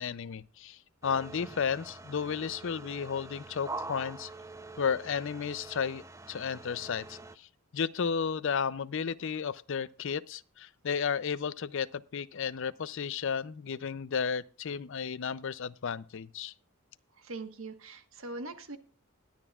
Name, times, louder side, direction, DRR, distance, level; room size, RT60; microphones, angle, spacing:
voice 1, 0.0-4.3 4.8-7.5 7.7-16.5, left 6 dB, 60° left, 0.4 m, -33 dB
sound 1, 1.0-7.4, right 3 dB, 15° right, 0.5 m, -45 dB
voice 2, 17.1-18.8, right 2 dB, 65° right, 1.3 m, -42 dB
21.0 x 9.1 x 2.4 m
head